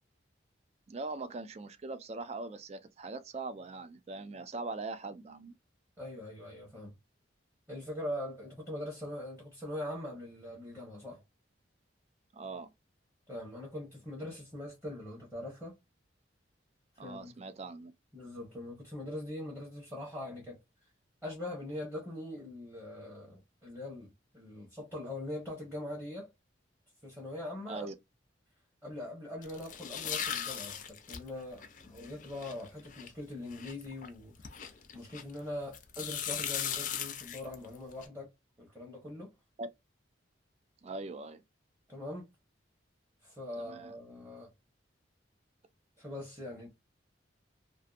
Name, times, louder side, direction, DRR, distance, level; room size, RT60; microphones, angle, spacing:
voice 1, 0.9-5.5 12.3-12.7 17.0-17.9 27.7-27.9 39.6-39.7 40.8-41.4 43.6-43.9, right 3 dB, 35° right, 0.3 m, -41 dB
voice 2, 6.0-6.9 7.7-11.2 13.3-15.8 17.0-17.3 18.1-20.6 21.2-26.3 27.0-27.9 28.8-38.3 38.6-39.3 41.9-42.3 43.2-44.5 46.0-46.7, left 1 dB, 10° right, 0.9 m, -42 dB
sound 1, 29.4-35.4 35.7-38.1, left 8 dB, 40° left, 0.4 m, -39 dB
2.6 x 2.5 x 2.3 m
head